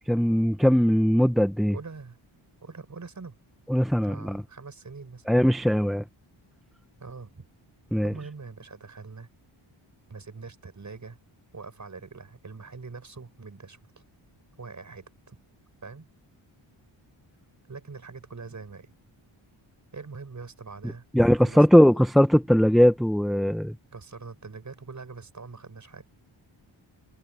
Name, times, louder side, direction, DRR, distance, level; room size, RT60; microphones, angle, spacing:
voice 1, 0.1-1.8 3.7-4.4 5.3-6.0 7.9-8.1 21.1-23.8, equal, ahead, 0.7 m, -20 dB
voice 2, 1.7-2.2 2.6-3.4 4.0-5.3 7.0-7.4 8.0-9.3 10.1-11.2 11.5-13.8 14.6-15.4 15.8-16.1 17.7-18.9 19.9-21.1 21.4-22.1 23.9-26.0, right 4 dB, 35° right, 6.9 m, -43 dB
wide cardioid pair, 135°, 49 cm